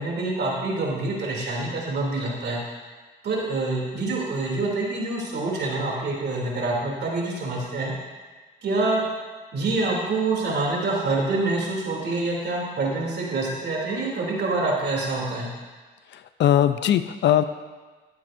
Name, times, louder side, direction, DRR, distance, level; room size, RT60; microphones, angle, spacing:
voice 1, 0.0-2.6 3.2-7.9 8.6-9.0 9.5-15.5, right 2 dB, 60° right, -3 dB, 3.0 m, -26 dB
voice 2, 16.1-17.4, left 11 dB, 65° left, 12 dB, 0.5 m, -20 dB
13.0 x 8.9 x 2.6 m, 1.3 s
cardioid pair, 90°, 20 cm